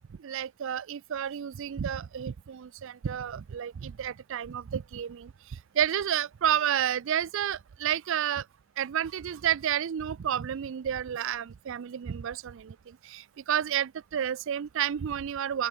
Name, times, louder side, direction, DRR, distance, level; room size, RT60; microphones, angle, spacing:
voice 1, 0.2-8.5 8.8-15.7, right 9 dB, 60° right, 0.4 m, -31 dB
open air
head